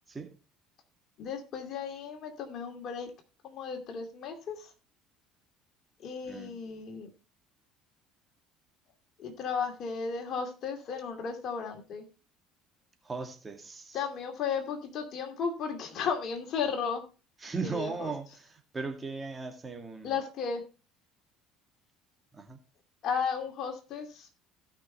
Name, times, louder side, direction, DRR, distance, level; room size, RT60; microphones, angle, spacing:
voice 1, 1.2-3.1 3.4-4.7 6.0-7.1 9.2-12.1 13.9-17.0 17.6-18.1 20.0-20.6 23.0-24.3, left 6 dB, 50° left, 2.4 m, -34 dB
voice 2, 6.2-6.6 13.0-14.0 17.4-20.2 22.3-22.6, right 4 dB, 25° right, 2.0 m, -37 dB
17.0 x 5.8 x 3.2 m
hypercardioid pair, 60°, 0 cm